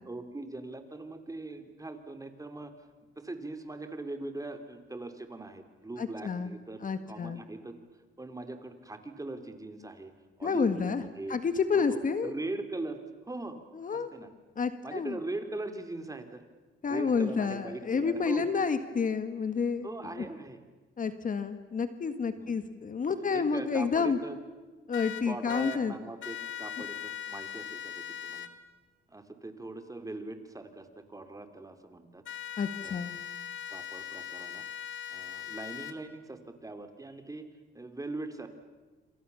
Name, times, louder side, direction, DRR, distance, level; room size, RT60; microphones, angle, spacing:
voice 1, 0.0-2.7 3.1-6.8 7.1-7.8 8.2-10.1 10.4-11.4 11.7-13.6 13.9-14.3 14.8-16.4 16.8-18.5 19.8-20.6 22.4-22.6 23.1-24.4 25.2-28.5 29.1-32.2 32.8-33.1 33.7-34.6 35.1-38.5, right 2 dB, 15° right, 7 dB, 3.3 m, -41 dB
voice 2, 6.0-6.5 6.8-7.4 10.4-11.0 11.3-12.3 13.8-14.1 14.6-15.2 16.8-19.9 20.2-20.3 21.0-24.2 24.9-25.9 32.6-33.2, left 5 dB, 40° left, 10 dB, 1.7 m, -29 dB
sound 1, 24.9-25.8 26.2-28.5 32.2-35.9, left 9 dB, 70° left, 2.1 m, -40 dB
27.0 x 27.0 x 7.1 m, 1.3 s
cardioid pair, 90°, 20 cm